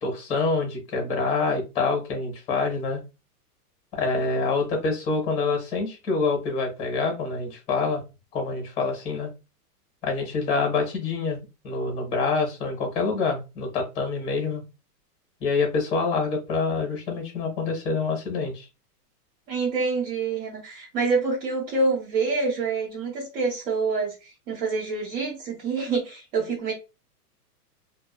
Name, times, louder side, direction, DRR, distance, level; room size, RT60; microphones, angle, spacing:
voice 1, 0.0-3.0 3.9-8.0 8.3-9.3 10.0-11.4 11.6-14.6 15.4-18.7, left 4 dB, 15° left, 0.7 m, -26 dB
voice 2, 19.5-26.7, right 4 dB, 50° right, 1.1 m, -27 dB
2.5 x 2.2 x 2.3 m
hypercardioid pair, 155°, 47 cm